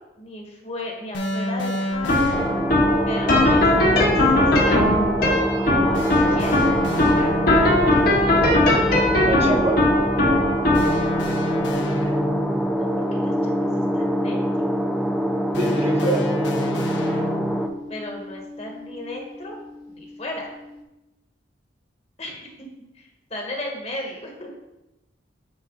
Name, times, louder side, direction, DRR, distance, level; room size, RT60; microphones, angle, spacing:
voice 1, 0.0-2.4 3.0-6.5 7.0-8.3 11.7-14.7 17.9-19.6 19.9-20.5 22.2-22.5 22.9-24.6, left 1 dB, 35° left, 0 dB, 1.4 m, -36 dB
sound 1, 1.1-3.0 5.9-7.8 10.7-12.7 15.5-17.7, left 1 dB, 80° left, 1.1 m, -29 dB
sound 2, 1.9-19.1, left 1 dB, 55° left, 1.4 m, -22 dB
sound 3, 2.3-17.7, right 1 dB, ahead, 0.4 m, -25 dB
voice 2, 9.2-9.8 15.6-16.2, right 1 dB, 35° right, -1 dB, 1.4 m, -24 dB
9.0 x 4.6 x 3.9 m, 0.97 s
head